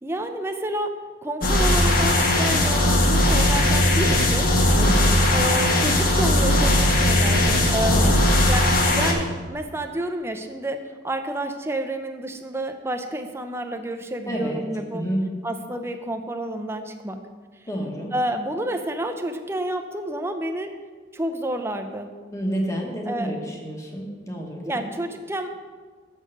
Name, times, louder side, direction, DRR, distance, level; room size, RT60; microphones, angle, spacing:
voice 1, 0.0-4.5 5.3-8.0 8.5-15.0 15.4-17.2 18.1-20.7 21.1-22.1 23.1-23.3 24.6-25.5, right 1 dB, 15° right, 5 dB, 0.5 m, -29 dB
sound 1, 1.4-9.1, left 1 dB, 50° left, 1.2 m, -19 dB
voice 2, 4.7-5.3 7.9-8.2 14.3-14.6 14.9-15.2 17.7-18.1 22.3-24.8, equal, 15° left, 0 dB, 1.2 m, -29 dB
6.4 x 6.2 x 6.7 m, 1.5 s
head